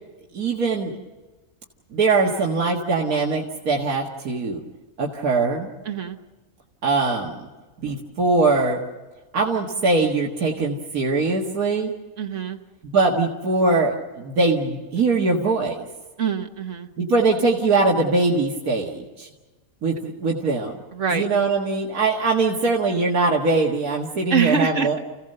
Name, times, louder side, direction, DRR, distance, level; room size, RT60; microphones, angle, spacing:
voice 1, 0.3-1.0 1.9-4.6 5.0-5.7 6.8-7.5 7.8-8.8 9.3-11.9 12.8-15.8 17.0-19.3 19.8-20.7 21.1-25.0, right 3 dB, 85° right, -1 dB, 2.3 m, -22 dB
voice 2, 5.8-6.2 12.2-12.6 16.2-16.9 20.9-21.2 24.3-25.0, right 5 dB, 60° right, 7 dB, 1.5 m, -24 dB
30.0 x 16.5 x 6.7 m, 1.2 s
omnidirectional pair, 1.5 m